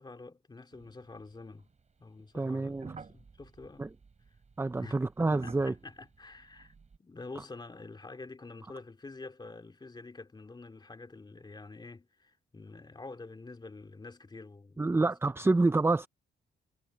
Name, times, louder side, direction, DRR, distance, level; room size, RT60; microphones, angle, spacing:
voice 1, 0.0-1.7 2.0-3.9 4.8-15.4, left 3 dB, 20° left, 2.7 m, -47 dB
sound 1, 0.7-1.8 2.4-7.0, right 5 dB, 35° right, 5.8 m, -52 dB
voice 2, 2.3-2.9 3.8-3.9 4.6-5.7 14.8-16.1, right 3 dB, 10° right, 0.6 m, -27 dB
cardioid pair, 90°, 20 cm